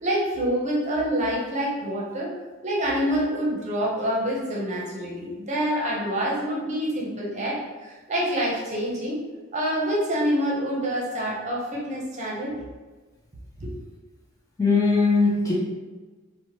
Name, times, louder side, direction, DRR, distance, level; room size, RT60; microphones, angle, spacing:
voice 1, 0.0-2.3 2.6-9.2 9.5-12.6 13.6-13.7, equal, 35° right, -4 dB, 0.7 m, -26 dB
voice 2, 14.6-15.5, left 4 dB, 15° left, -4 dB, 0.4 m, -20 dB
2.9 x 2.1 x 2.9 m, 1.3 s
head